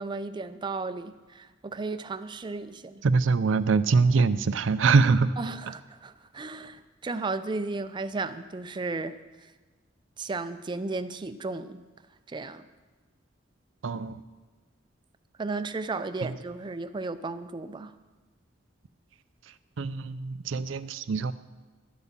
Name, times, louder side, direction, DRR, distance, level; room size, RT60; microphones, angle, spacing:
voice 1, 0.0-3.0 5.4-9.2 10.2-11.8 12.3-12.7 15.4-17.9, right 3 dB, 25° right, 10 dB, 0.4 m, -34 dB
voice 2, 3.0-5.3 13.8-14.2 16.2-16.3 19.8-21.3, right 4 dB, 80° right, 13 dB, 0.5 m, -23 dB
11.5 x 8.0 x 7.3 m, 1.3 s
head